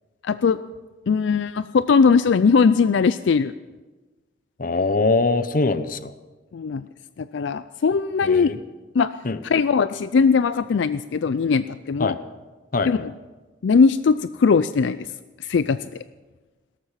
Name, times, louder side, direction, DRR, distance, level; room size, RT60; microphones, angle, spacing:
voice 1, 0.2-0.6 1.1-3.5 6.5-6.9 7.2-8.5 8.9-9.1 9.4-12.1 12.9-13.0 13.6-15.1 15.4-16.0, left 5 dB, 75° left, 14 dB, 0.4 m, -20 dB
voice 2, 4.6-6.1 8.2-8.6 9.2-9.4 12.0-12.2 12.7-13.1, left 3 dB, 45° left, 12 dB, 0.8 m, -22 dB
17.5 x 13.5 x 5.8 m, 1.2 s
head